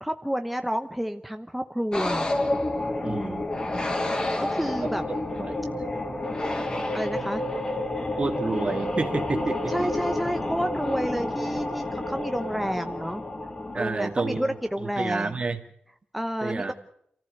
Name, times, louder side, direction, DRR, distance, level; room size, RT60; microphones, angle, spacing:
voice 1, 0.0-2.3 3.0-3.5 4.4-5.1 6.9-7.4 9.7-13.2 13.7-15.3 16.1-16.7, equal, ahead, 7 dB, 0.9 m, -30 dB
sound 1, 1.9-14.9, left 1 dB, 25° left, 2.9 m, -30 dB
voice 2, 3.0-3.5 4.7-4.9 5.4-5.6 8.2-9.7 13.7-14.5 15.0-15.6 16.4-16.7, right 3 dB, 40° right, 7 dB, 2.3 m, -29 dB
27.5 x 15.0 x 8.0 m, 0.71 s
wide cardioid pair, 120°, 3 cm